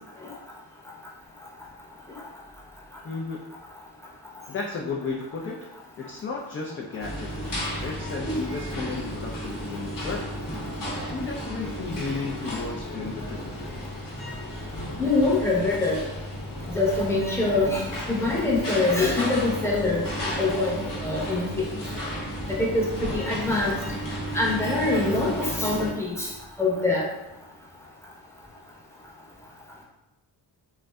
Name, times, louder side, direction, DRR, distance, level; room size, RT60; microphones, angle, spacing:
voice 1, 3.0-3.4 4.5-7.3 7.8-10.3 11.1-13.5, left 4 dB, 30° left, -2 dB, 0.4 m, -33 dB
sound 1, 7.0-25.9, equal, 50° left, 0.9 m, -33 dB
voice 2, 15.0-16.0 16.7-20.7 21.0-21.7 22.5-23.7 24.3-26.3 26.6-27.1, left 2 dB, 5° left, -4 dB, 0.8 m, -24 dB
2.5 x 2.2 x 2.2 m, 0.98 s
supercardioid pair, 55°, 43 cm